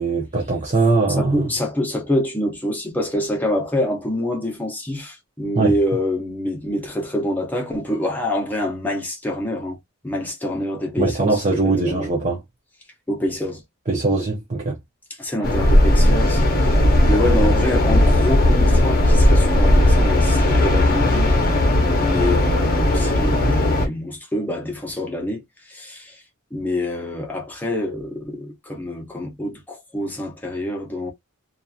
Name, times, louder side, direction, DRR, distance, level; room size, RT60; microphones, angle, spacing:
voice 1, 0.0-1.5 5.5-5.7 11.0-12.4 13.9-14.8, right 3 dB, 30° right, 0.6 m, -21 dB
voice 2, 1.2-9.8 10.0-12.1 13.1-13.6 15.2-16.8 17.1-21.3 22.0-26.1 26.5-31.1, left 1 dB, 10° left, 0.8 m, -26 dB
sound 1, 15.4-23.9, left 1 dB, 40° left, 0.7 m, -16 dB
2.8 x 2.4 x 2.3 m
head